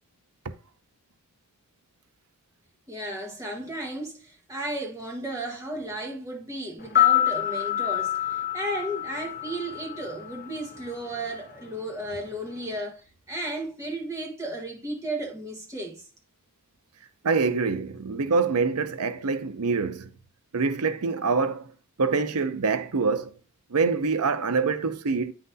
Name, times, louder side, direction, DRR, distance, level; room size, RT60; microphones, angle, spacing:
voice 1, 2.9-16.1, right 1 dB, 15° right, 1.5 m, -34 dB
sound 1, 6.8-11.0 11.2-11.3, left 12 dB, 40° left, 0.8 m, -26 dB
voice 2, 17.2-20.1 20.5-21.7 22.0-23.3 23.7-25.3, right 4 dB, 85° right, 0.7 m, -25 dB
9.1 x 5.8 x 2.7 m
head